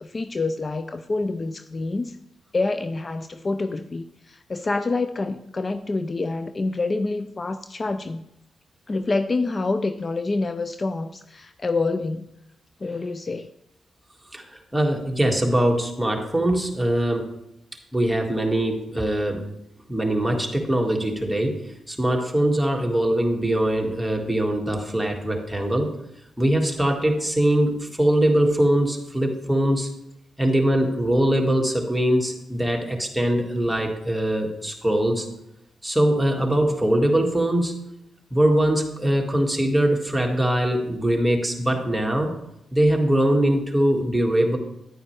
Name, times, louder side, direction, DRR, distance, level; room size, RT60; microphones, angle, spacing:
voice 1, 0.0-2.2 2.5-8.2 8.9-12.3 12.8-13.5, left 3 dB, 40° left, 11 dB, 0.4 m, -27 dB
voice 2, 14.3-17.3 17.9-19.5 19.9-25.9 26.4-29.9 30.4-35.3 35.8-37.7 38.3-42.3 42.7-44.6, right 1 dB, 5° right, 1 dB, 2.1 m, -22 dB
10.0 x 9.4 x 3.4 m, 0.84 s
supercardioid pair, 45°, 0 cm